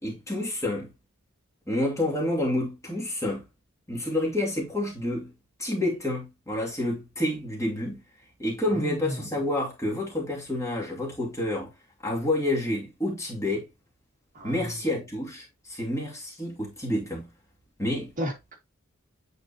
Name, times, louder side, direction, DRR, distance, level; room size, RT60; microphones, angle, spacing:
voice 1, 0.0-0.9 1.7-3.4 3.9-5.3 5.6-8.0 8.4-11.7 12.0-13.7 14.4-17.3 17.8-18.1, left 1 dB, 15° left, 2.4 m, -29 dB
voice 2, 8.7-9.4 14.3-14.7 18.2-18.6, equal, 35° right, 2.3 m, -33 dB
9.3 x 4.4 x 2.8 m
head